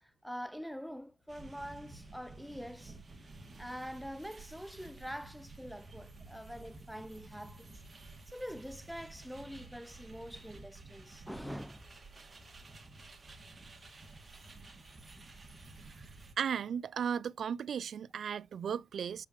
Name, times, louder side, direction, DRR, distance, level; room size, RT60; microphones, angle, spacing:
voice 1, 0.0-3.0 3.6-7.7 8.3-11.8, equal, ahead, 0.5 m, -45 dB
sound 1, 1.3-16.3, right 3 dB, 25° right, 2.0 m, -52 dB
voice 2, 16.4-19.3, right 7 dB, 55° right, 0.4 m, -35 dB
7.4 x 6.7 x 3.1 m
cardioid pair, 90°, 0 cm